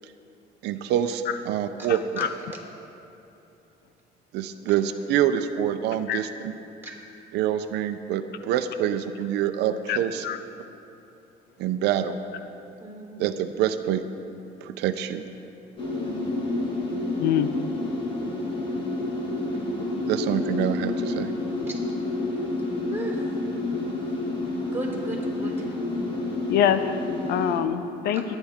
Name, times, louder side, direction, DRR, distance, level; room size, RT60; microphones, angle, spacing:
voice 1, 0.6-2.3 4.3-6.5 7.3-10.2 11.6-12.2 13.2-14.0 14.6-15.2 20.1-21.3, right 10 dB, 85° right, 9 dB, 0.6 m, -26 dB
voice 2, 1.9-2.3 6.1-6.2 9.9-10.4 17.2-17.5 26.5-28.2, left 9 dB, 75° left, 10 dB, 0.6 m, -25 dB
voice 3, 12.8-13.3 15.9-16.4 19.4-19.7 21.7-21.8 22.9-23.3 24.7-25.5, right 2 dB, 15° right, -3 dB, 3.8 m, -36 dB
sound 1, 15.8-27.6, left 2 dB, 30° left, 2.2 m, -29 dB
21.5 x 10.0 x 3.6 m, 2.8 s
cardioid pair, 110°, 17 cm